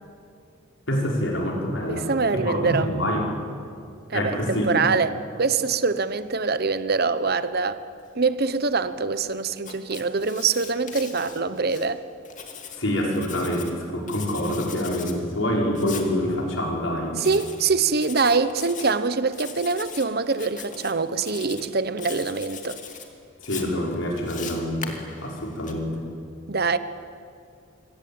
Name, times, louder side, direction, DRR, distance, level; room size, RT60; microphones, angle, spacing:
voice 1, 0.9-2.1 2.3-3.3 4.1-4.9 12.8-17.2 23.4-26.1, equal, 75° left, 0 dB, 5.5 m, -26 dB
voice 2, 1.9-2.9 4.1-7.8 8.1-12.0 17.2-22.8 26.5-26.8, right 4 dB, 50° right, 13 dB, 1.0 m, -24 dB
Writing, 9.6-11.9 12.3-13.7 14.1-15.2 15.8-16.1 17.2-17.6 18.0-18.9 19.3-20.1 20.3-20.9 21.2-21.7 22.0-23.1 23.4-25.7, left 7 dB, 40° left, 2.8 m, -40 dB
27.0 x 23.5 x 8.8 m, 2.4 s
head